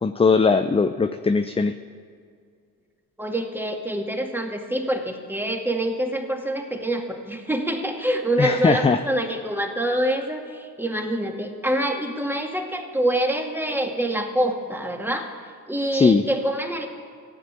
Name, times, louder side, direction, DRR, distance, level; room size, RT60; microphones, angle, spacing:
voice 1, 0.0-1.7 8.4-9.0 15.9-16.2, left 4 dB, 15° left, 9 dB, 0.5 m, -19 dB
voice 2, 3.2-15.3 15.7-16.9, right 1 dB, 5° right, 2 dB, 2.2 m, -26 dB
14.5 x 9.1 x 9.0 m, 2.2 s
hypercardioid pair, 55°, 46 cm